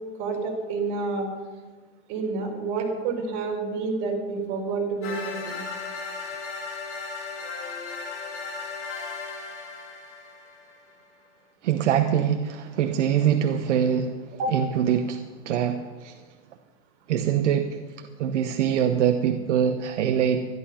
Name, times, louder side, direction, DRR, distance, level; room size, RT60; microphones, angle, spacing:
voice 1, 0.2-1.3 2.1-5.6 14.4-14.5, right 4 dB, 45° right, 1 dB, 4.1 m, -29 dB
sound 1, 5.0-10.9, left 4 dB, 70° left, 4.6 m, -36 dB
voice 2, 11.6-14.1 14.5-16.1 17.1-17.8 18.2-20.5, right 9 dB, 80° right, 6 dB, 1.1 m, -23 dB
14.0 x 11.0 x 5.7 m, 1.4 s
supercardioid pair, 140°, 36 cm